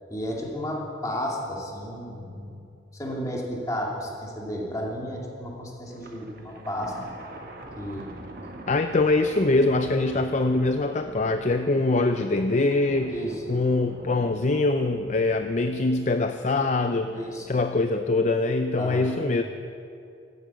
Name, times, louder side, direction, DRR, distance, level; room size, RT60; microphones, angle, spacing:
voice 1, 0.1-2.6 2.9-6.9 7.8-8.1 13.1-13.4 17.1-17.6 18.8-19.1, equal, 20° left, -3 dB, 2.4 m, -33 dB
Thunder, 5.9-17.6, right 1 dB, 50° right, 1.5 m, -44 dB
voice 2, 8.7-13.2 13.5-17.2 17.5-19.4, left 2 dB, 40° left, 7 dB, 0.4 m, -23 dB
13.0 x 9.4 x 8.2 m, 2.6 s
head